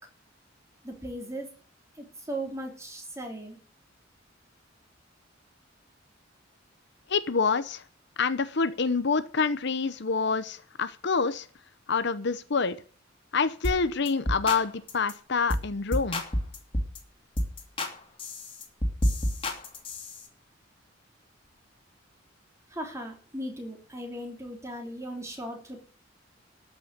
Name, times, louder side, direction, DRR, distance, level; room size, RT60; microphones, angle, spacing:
voice 1, 0.8-1.5 2.0-3.6 22.7-25.8, right 1 dB, 15° right, 2 dB, 3.3 m, -37 dB
voice 2, 7.1-7.8 8.2-11.5 11.9-12.8 13.3-16.2, left 5 dB, 60° left, 13 dB, 0.9 m, -27 dB
sound 1, 13.6-13.8 14.1-14.6 14.9-15.1 15.5-15.7 15.9-17.0 17.4-17.9 18.2-20.2, left 1 dB, 30° left, 2.7 m, -29 dB
13.5 x 6.3 x 9.4 m, 0.42 s
head